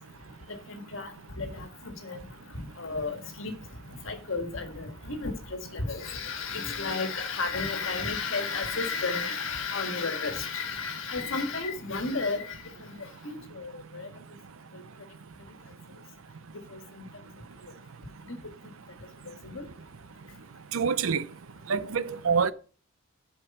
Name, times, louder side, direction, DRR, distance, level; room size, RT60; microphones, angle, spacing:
voice 1, 0.7-1.1 1.4-2.2 2.5-3.5 4.0-5.4 5.7-12.6 12.8-12.9 13.2-14.1 16.7-16.8 19.4-19.7, left 4 dB, 70° left, 1.7 m, -32 dB
voice 2, 20.7-21.2 21.7-22.5, right 6 dB, 80° right, 0.6 m, -26 dB
11.0 x 4.8 x 5.4 m
head